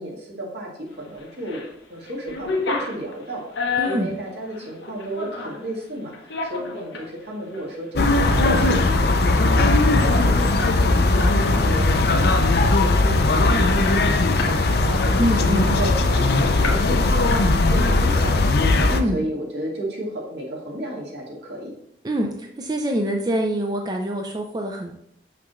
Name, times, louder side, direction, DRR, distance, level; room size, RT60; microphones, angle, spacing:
voice 1, 0.0-1.6 1.9-18.6 19.1-21.7, right 1 dB, 70° right, -2 dB, 1.9 m, -33 dB
sound 1, 1.2-1.7 2.0-5.6 6.1-7.1 7.5-7.7 8.1-8.4 8.7-8.8 9.1-11.4 11.7-11.9 12.3-12.7 13.2-13.3 13.5-14.6 15.0-16.2 16.6-17.0 17.3-17.9, left 4 dB, 90° left, 1.1 m, -31 dB
voice 2, 3.8-4.1 15.2-15.8 18.9-19.2 22.0-24.9, equal, 20° right, 2 dB, 0.5 m, -25 dB
sound 2, 8.0-19.0, left 2 dB, 60° left, 0.5 m, -18 dB
6.2 x 5.8 x 3.1 m, 0.73 s
head